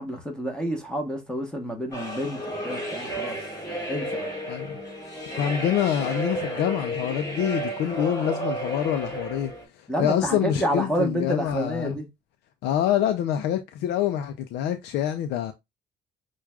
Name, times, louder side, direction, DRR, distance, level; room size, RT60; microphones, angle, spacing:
voice 1, 0.0-3.4 3.9-4.3 9.9-12.1, equal, 5° left, 1.0 m, -29 dB
sound 1, 1.9-9.6, right 1 dB, 20° left, 2.2 m, -32 dB
voice 2, 4.5-4.8 5.4-12.0 12.6-15.5, left 10 dB, 80° left, 0.5 m, -26 dB
6.0 x 2.3 x 2.3 m
cardioid pair, 110°, 17 cm